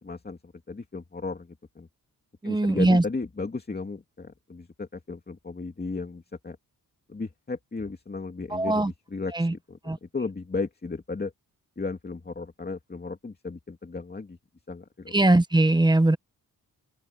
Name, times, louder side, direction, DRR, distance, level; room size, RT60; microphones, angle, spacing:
voice 1, 0.0-1.9 2.4-6.6 7.1-11.3 11.8-14.4 14.7-15.1, left 3 dB, 25° left, 2.5 m, -35 dB
voice 2, 2.4-3.0 8.5-8.9 9.3-9.5 9.9-10.0 15.1-16.2, right 2 dB, 10° right, 1.1 m, -21 dB
open air
wide cardioid pair, 125°, 35 cm